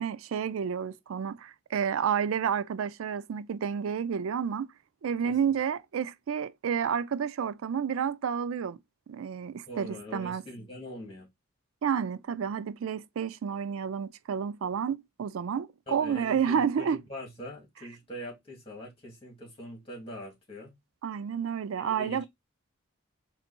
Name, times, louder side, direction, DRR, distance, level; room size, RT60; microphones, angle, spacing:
voice 1, 0.0-4.7 5.0-8.8 9.1-10.4 11.8-17.0 21.0-22.2, right 7 dB, 80° right, 0.4 m, -30 dB
voice 2, 9.7-11.3 15.9-20.7 21.8-22.2, equal, 25° left, 2.1 m, -43 dB
4.3 x 2.7 x 4.1 m
head